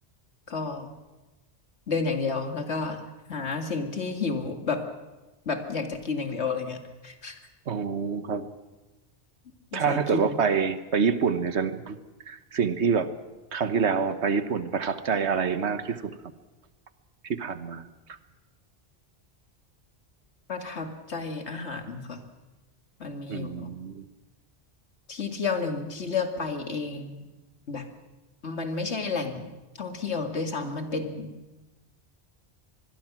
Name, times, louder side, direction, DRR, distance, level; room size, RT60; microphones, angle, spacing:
voice 1, 0.5-0.9 1.9-3.0 3.3-4.8 5.5-7.4 9.7-10.4 20.5-22.2 23.0-23.7 25.1-27.3 27.7-27.9 28.4-29.5 29.8-31.3, left 4 dB, 75° left, 5 dB, 2.4 m, -31 dB
voice 2, 7.7-8.5 9.7-12.0 12.3-13.1 13.5-16.1 17.2-17.8 23.3-24.0, right 6 dB, 75° right, 11 dB, 1.4 m, -26 dB
25.5 x 21.0 x 6.1 m, 1.1 s
omnidirectional pair, 1.1 m